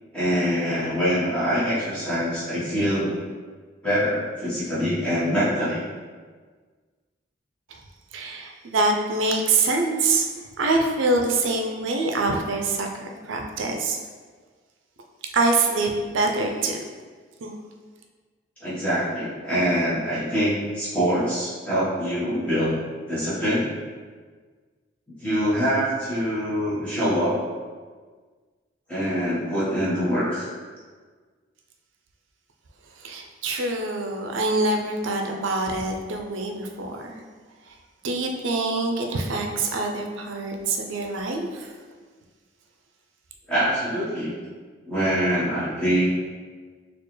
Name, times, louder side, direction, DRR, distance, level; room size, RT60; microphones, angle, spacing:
voice 1, 0.1-3.2 3.8-5.8 18.6-22.8 23.1-23.7 25.2-27.4 28.9-30.5 43.5-44.3 44.9-46.0, equal, 5° left, -12 dB, 1.3 m, -24 dB
voice 2, 8.1-10.3 10.6-14.0 15.3-16.8 17.4-17.5 33.0-37.2 37.7-37.8 38.0-41.8, right 3 dB, 80° right, 3 dB, 0.5 m, -25 dB
4.3 x 2.4 x 3.1 m, 1.5 s
head